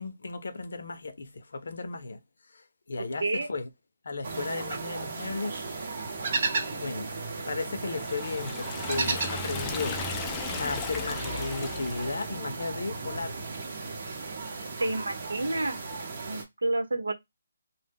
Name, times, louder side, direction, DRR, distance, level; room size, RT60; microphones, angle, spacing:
voice 1, 0.0-2.2 2.9-3.7 4.0-5.6 6.5-7.1 7.5-10.0 10.6-13.4, left 3 dB, 70° left, 0.5 m, -35 dB
voice 2, 3.0-3.5 14.8-15.8 16.3-17.1, right 2 dB, 85° right, 0.8 m, -29 dB
sound 1, 4.2-16.4, right 4 dB, 45° right, 0.9 m, -35 dB
Liquid, 7.8-12.4, left 4 dB, 15° left, 0.4 m, -36 dB
2.1 x 2.1 x 3.4 m
hypercardioid pair, 160°, 0 cm